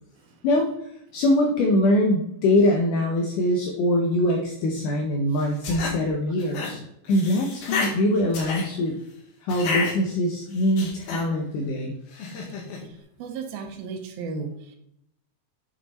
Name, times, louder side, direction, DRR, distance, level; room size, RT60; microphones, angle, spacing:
voice 1, 0.4-6.8 7.1-9.0 9.4-11.9, left 1 dB, 70° left, 2 dB, 2.3 m, -23 dB
sound 1, 5.4-6.0 6.4-6.7 7.0-7.9 8.3-8.7 9.5-9.9 10.5-11.2 12.1-12.8, left 4 dB, 90° left, 3.7 m, -30 dB
voice 2, 12.7-14.8, right 4 dB, 85° right, 6 dB, 3.0 m, -36 dB
9.7 x 5.9 x 4.2 m, 0.75 s
omnidirectional pair, 4.1 m